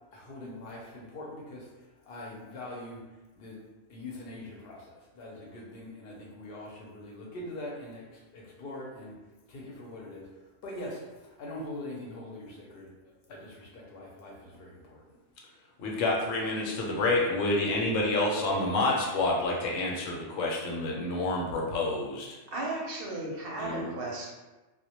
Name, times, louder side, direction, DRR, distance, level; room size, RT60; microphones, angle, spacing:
voice 1, 0.1-3.1 3.4-3.6 3.9-9.2 9.5-12.9 13.3-15.2, left 1 dB, 60° left, -3 dB, 0.7 m, -43 dB
voice 2, 15.8-22.3 23.6-23.9, left 2 dB, 90° left, -1 dB, 1.0 m, -28 dB
voice 3, 22.5-24.3, right 2 dB, 60° right, -2 dB, 0.7 m, -35 dB
2.1 x 2.1 x 2.8 m, 1.1 s
omnidirectional pair, 1.3 m